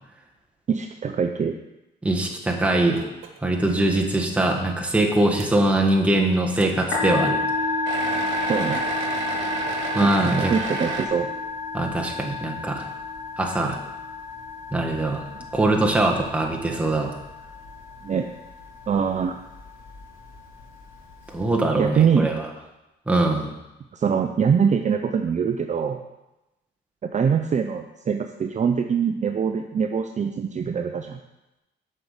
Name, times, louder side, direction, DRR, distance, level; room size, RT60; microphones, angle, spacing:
voice 1, 0.7-1.5 8.5-8.8 10.0-11.3 15.3-15.5 18.0-18.3 18.9-19.4 21.7-22.3 23.9-26.0 27.1-31.2, right 6 dB, 35° right, 6 dB, 0.6 m, -23 dB
voice 2, 2.0-3.0 3.4-7.4 9.9-10.5 11.7-12.9 13.4-13.8 14.7-15.2 15.5-17.1 21.3-22.5 23.1-23.5, right 2 dB, 5° right, 0 dB, 1.6 m, -22 dB
sound 1, 3.0-3.4 3.8-3.9 4.6-4.7 5.4-5.5 7.9-11.1, right 5 dB, 80° right, 1.3 m, -31 dB
Musical instrument, 6.7-21.5, left 3 dB, 90° left, 3.7 m, -31 dB
7.5 x 5.6 x 6.6 m, 0.97 s
cardioid pair, 90°, 20 cm